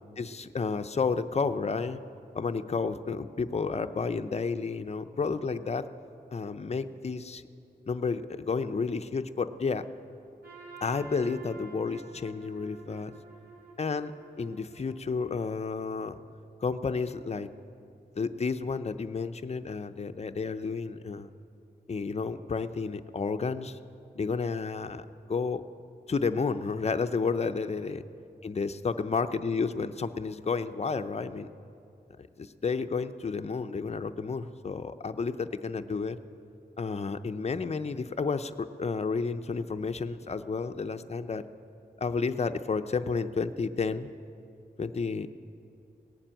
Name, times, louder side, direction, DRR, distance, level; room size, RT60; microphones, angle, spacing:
voice 1, 0.2-2.0 2.3-5.9 6.3-7.4 7.9-9.9 10.8-13.1 13.8-14.1 14.4-16.2 16.6-17.5 18.2-21.3 21.9-23.8 24.2-25.6 26.1-28.0 28.4-31.5 32.4-36.2 36.8-41.4 42.0-44.1 44.8-45.3, left 4 dB, 40° left, 9 dB, 0.5 m, -31 dB
Trumpet, 10.4-15.5, right 4 dB, 70° right, 3.1 m, -49 dB
18.5 x 7.3 x 8.8 m, 2.6 s
wide cardioid pair, 95°, 17 cm